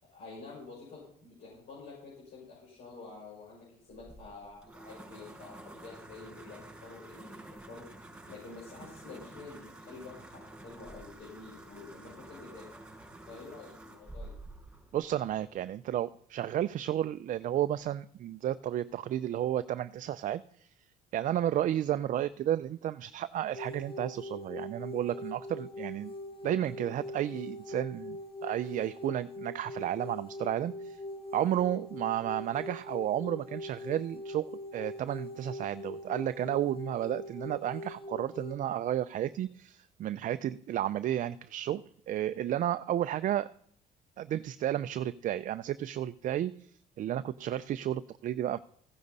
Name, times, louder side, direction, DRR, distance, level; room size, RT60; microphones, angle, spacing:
voice 1, 0.1-7.3 7.7-12.6 13.3-14.3, left 4 dB, 70° left, -6 dB, 6.4 m, -49 dB
pencil sharpener, 3.9-15.7, right 2 dB, 5° right, 4.6 m, -50 dB
voice 2, 14.9-20.4 21.1-26.1 26.4-31.0 31.3-43.5 44.2-46.7 47.0-48.6, right 11 dB, 50° right, 12 dB, 0.5 m, -32 dB
sound 1, 23.5-38.6, left 1 dB, 30° left, 1.7 m, -42 dB
15.0 x 10.0 x 4.1 m, 0.66 s
cardioid pair, 110°, 17 cm